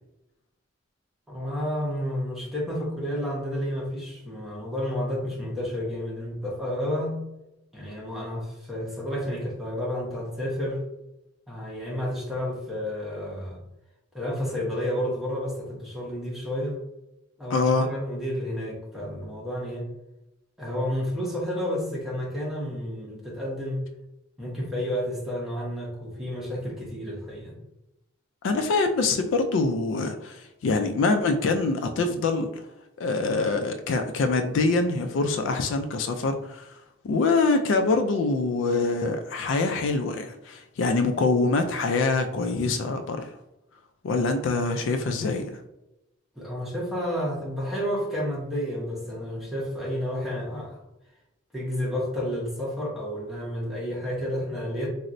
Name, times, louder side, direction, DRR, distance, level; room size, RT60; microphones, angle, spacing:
voice 1, 1.3-7.2 7.7-10.8 11.5-13.6 14.1-16.8 17.4-19.9 20.6-23.8 24.4-27.5 46.4-50.8 51.5-54.9, equal, ahead, -5 dB, 0.8 m, -31 dB
voice 2, 17.5-17.9 28.4-32.6 33.0-36.7 37.0-43.3 44.0-45.4, left 3 dB, 65° left, 6 dB, 0.3 m, -24 dB
4.1 x 2.0 x 2.5 m, 0.92 s
head